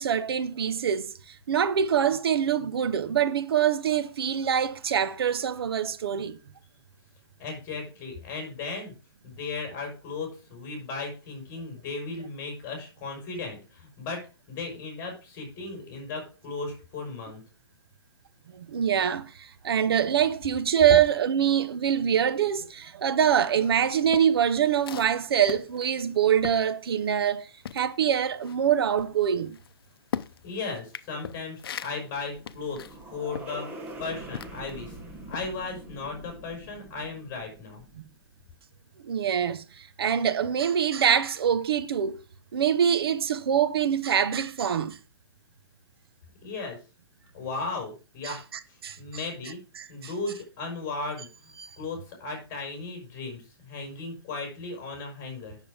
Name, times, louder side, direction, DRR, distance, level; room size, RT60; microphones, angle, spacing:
voice 1, 0.0-6.4 18.5-27.5 27.7-29.6 38.0-38.1 39.0-42.2 42.5-45.0 48.2-48.4 48.8-49.0 49.8-49.9 51.6-51.7, right 8 dB, 65° right, 1.0 m, -24 dB
voice 2, 7.4-8.9 9.2-14.2 14.5-17.4 30.4-32.8 33.1-35.0 35.3-37.8 46.4-46.8 47.3-48.4 48.7-49.6 49.9-55.6, left 3 dB, 25° left, 5.1 m, -36 dB
sound 1, 23.6-27.4 27.6-34.8 35.3-35.5, left 8 dB, 65° left, 0.7 m, -40 dB
sound 2, 31.8-38.2, right 1 dB, 10° right, 1.2 m, -44 dB
9.1 x 7.1 x 5.0 m
hypercardioid pair, 165°, 13 cm